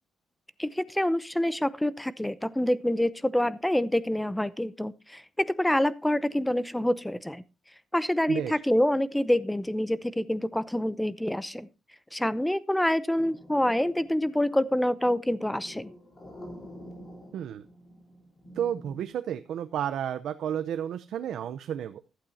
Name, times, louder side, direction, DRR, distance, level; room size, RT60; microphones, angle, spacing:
voice 1, 0.6-7.4 7.9-11.7 12.1-15.9, left 1 dB, 5° left, 16 dB, 0.6 m, -27 dB
voice 2, 8.3-8.6 17.3-17.7 18.6-22.0, right 9 dB, 80° right, 10 dB, 0.7 m, -32 dB
sound 1, 13.1-19.1, equal, 25° left, 3.9 m, -48 dB
15.0 x 11.5 x 2.7 m, 0.28 s
wide cardioid pair, 160°, 0 cm